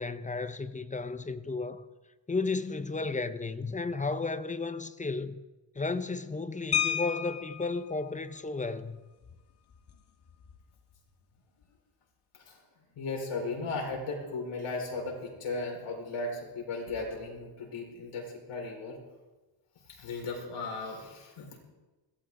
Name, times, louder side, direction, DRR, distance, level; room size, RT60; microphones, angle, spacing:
voice 1, 0.0-1.8 2.3-5.4 5.8-9.0, left 3 dB, 15° left, 0.6 m, -33 dB
sound 1, 6.7-7.8 9.2-9.4 9.7-9.9 10.3-10.6, left 9 dB, 50° left, 1.7 m, -31 dB
voice 2, 12.9-19.0 19.9-21.6, left 3 dB, 80° left, 4.9 m, -36 dB
21.5 x 16.0 x 3.8 m
wide cardioid pair, 135°, 50 cm